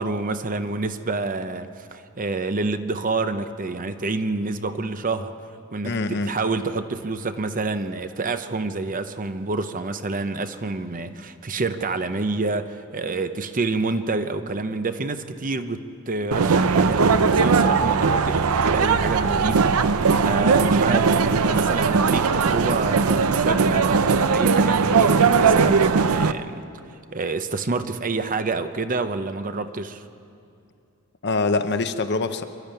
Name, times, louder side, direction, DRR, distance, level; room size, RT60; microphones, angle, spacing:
voice 1, 0.0-5.3 5.7-19.7 20.1-26.6 27.1-30.0, right 3 dB, 40° right, 10 dB, 0.8 m, -28 dB
voice 2, 5.8-6.3 31.2-32.4, left 3 dB, 50° left, 9 dB, 0.9 m, -24 dB
sound 1, 16.3-26.3, right 5 dB, 75° right, 0.6 m, -19 dB
25.5 x 12.5 x 9.0 m, 2.5 s
head